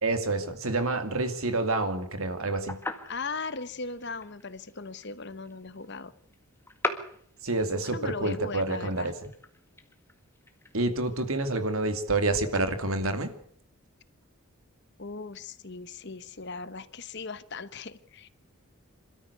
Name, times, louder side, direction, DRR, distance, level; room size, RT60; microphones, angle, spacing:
voice 1, 0.0-2.8 7.4-9.1 10.7-13.3, right 2 dB, 70° right, 2.6 m, -28 dB
sound 1, 2.4-13.1, left 2 dB, 10° left, 1.8 m, -41 dB
voice 2, 3.1-6.1 7.8-9.1 15.0-18.3, left 4 dB, 50° left, 1.1 m, -38 dB
27.0 x 13.5 x 8.2 m
head